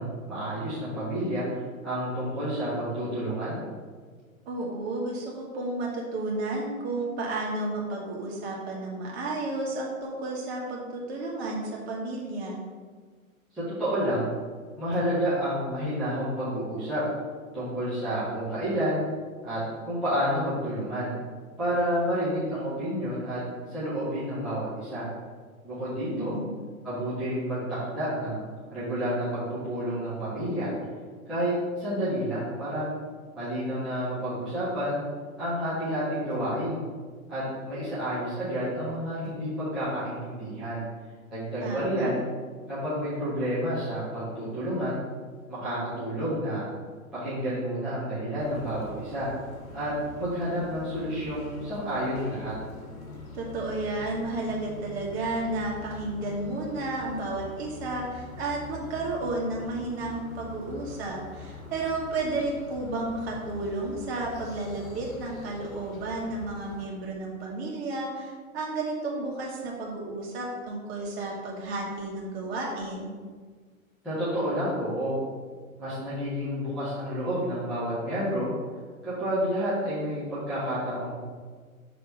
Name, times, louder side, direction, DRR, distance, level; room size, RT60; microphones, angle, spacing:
voice 1, 0.0-1.4 1.8-3.6 13.5-14.3 14.8-17.0 17.5-19.0 19.4-21.1 21.6-23.4 23.7-25.1 25.6-26.4 26.8-27.6 27.9-28.4 28.7-30.7 31.3-32.9 33.3-35.0 35.4-36.8 37.3-40.8 41.3-42.2 42.7-45.0 45.5-46.7 47.2-49.3 49.7-49.9 50.2-52.5 74.0-75.2 75.8-78.5 79.0-81.2, equal, ahead, -14 dB, 0.3 m, -30 dB
voice 2, 4.4-12.6 26.1-26.5 41.6-42.1 53.3-73.1, right 2 dB, 45° right, -2 dB, 1.7 m, -32 dB
sound 1, 48.4-66.9, left 3 dB, 70° left, 1.2 m, -44 dB
5.8 x 3.4 x 5.3 m, 1.6 s
figure-of-eight pair, 105°, 43 cm